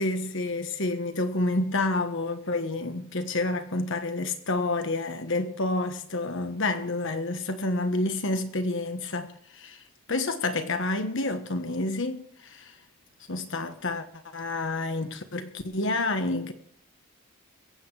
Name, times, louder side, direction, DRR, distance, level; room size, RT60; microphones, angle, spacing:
voice 1, 0.0-9.8 10.1-12.8 13.3-16.5, left 2 dB, 60° left, 1.4 m, -29 dB
22.0 x 8.2 x 4.9 m
head